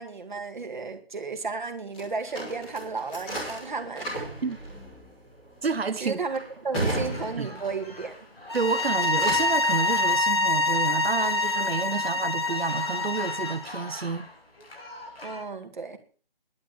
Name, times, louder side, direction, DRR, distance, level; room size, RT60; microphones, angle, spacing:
voice 1, 0.0-4.3 6.0-8.2 15.2-16.0, right 4 dB, 50° right, 2.3 m, -34 dB
sound 1, 1.9-8.0 8.4-9.7, right 1 dB, 10° left, 2.4 m, -35 dB
voice 2, 5.6-6.2 6.8-6.9 7.4-7.5 8.5-14.3, right 4 dB, 80° right, 1.4 m, -29 dB
sound 2, 6.9-15.4, left 2 dB, 80° left, 6.1 m, -43 dB
sound 3, 8.5-13.6, left 2 dB, 25° left, 0.7 m, -25 dB
11.5 x 8.6 x 7.0 m
hypercardioid pair, 180°, 30 cm